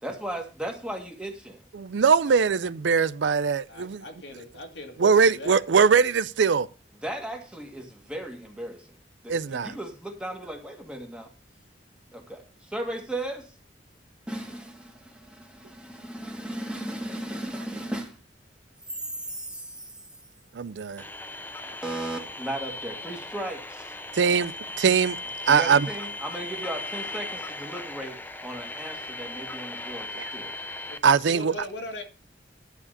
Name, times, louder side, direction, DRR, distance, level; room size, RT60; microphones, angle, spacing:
voice 1, 0.0-1.6 7.0-8.9 9.2-11.3 12.1-13.5 14.3-18.2 19.2-19.9 21.8-23.9 25.5-30.5, right 1 dB, 5° right, 1.8 m, -36 dB
voice 2, 1.7-4.0 5.0-6.7 9.3-9.7 20.5-21.0 24.2-24.5 24.8-25.2 25.5-25.9 30.1-30.3 31.0-31.5, right 6 dB, 80° right, 0.5 m, -21 dB
voice 3, 3.7-5.6 21.6-22.3 30.9-32.0, left 1 dB, 75° left, 2.0 m, -40 dB
sound 1, 21.0-31.0, left 2 dB, 10° left, 0.6 m, -37 dB
11.5 x 4.9 x 6.6 m
head